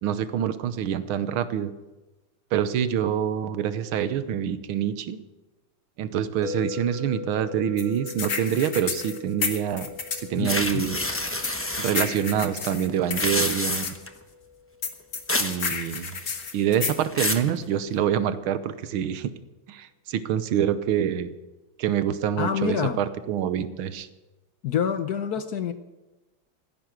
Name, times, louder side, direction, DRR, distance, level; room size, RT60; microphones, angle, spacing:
voice 1, 0.0-1.7 2.5-5.2 6.0-9.9 10.2-11.1 11.8-14.0 15.4-16.1 16.5-19.3 19.7-21.3 21.8-24.1, right 9 dB, 85° right, 13 dB, 1.7 m, -26 dB
sound 1, 6.4-16.5, left 5 dB, ahead, 2.9 m, -42 dB
sound 2, 7.8-10.3 11.1-13.9 14.8-17.0, left 5 dB, 40° left, 1.6 m, -31 dB
voice 2, 10.4-10.8 22.4-23.0 24.6-25.7, left 8 dB, 60° left, 10 dB, 1.1 m, -27 dB
sound 3, 10.4-12.1 13.0-14.1 15.3-15.6 15.9-16.4 16.8-17.5, left 1 dB, 15° left, 0.4 m, -28 dB
15.0 x 10.5 x 7.9 m, 1.1 s
omnidirectional pair, 2.3 m